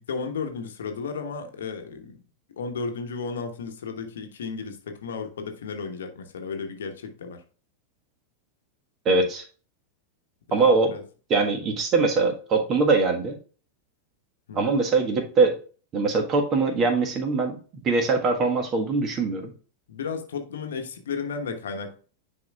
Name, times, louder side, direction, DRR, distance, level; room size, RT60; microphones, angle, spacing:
voice 1, 0.0-2.2 2.6-7.4 10.5-11.0 14.5-14.7 19.9-22.0, left 5 dB, 65° left, 1.1 m, -34 dB
voice 2, 9.0-9.4 10.5-10.9 11.3-13.3 14.5-15.6 15.9-17.6 17.8-19.5, right 3 dB, 30° right, 1.4 m, -22 dB
10.0 x 4.8 x 2.4 m
figure-of-eight pair, 90°, 0 cm